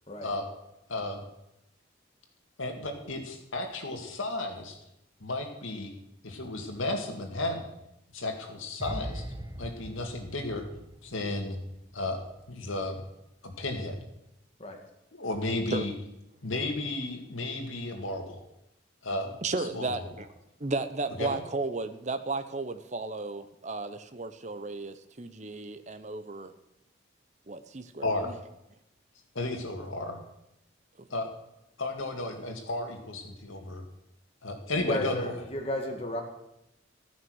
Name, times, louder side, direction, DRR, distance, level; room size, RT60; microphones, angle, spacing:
voice 1, 0.9-1.2 2.6-4.8 5.2-5.9 6.2-7.7 8.1-9.3 9.6-10.6 11.0-11.6 11.9-12.2 12.5-13.0 13.4-14.0 15.2-15.9 16.4-18.4 19.0-19.3 19.7-20.1 21.2-21.4 28.0-28.3 29.3-30.2 31.1-31.3 31.8-33.8 34.4-35.3, left 2 dB, 90° left, 4 dB, 2.2 m, -33 dB
sound 1, 8.8-12.0 12.2-12.5, right 1 dB, 20° right, 1.1 m, -41 dB
voice 2, 19.4-20.3 20.6-26.5 27.5-28.4, right 3 dB, 35° right, 10 dB, 0.8 m, -34 dB
voice 3, 34.7-36.2, left 1 dB, 30° left, 1 dB, 2.1 m, -34 dB
14.0 x 9.5 x 6.4 m, 0.86 s
head